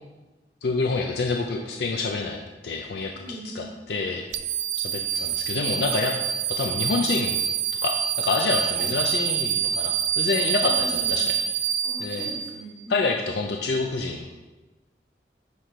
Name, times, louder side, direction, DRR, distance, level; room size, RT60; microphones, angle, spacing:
voice 1, 0.6-3.1 3.5-4.2 4.8-6.1 6.6-7.4 7.8-11.4 12.0-12.3 12.9-14.3, left 3 dB, 65° left, 2 dB, 0.4 m, -27 dB
voice 2, 3.1-3.7 8.7-9.0 10.7-11.2 11.8-13.0, right 1 dB, 30° left, -7 dB, 2.1 m, -39 dB
sound 1, 4.3-12.8, right 9 dB, 65° right, 0.3 m, -26 dB
7.9 x 3.2 x 4.3 m, 1.2 s
head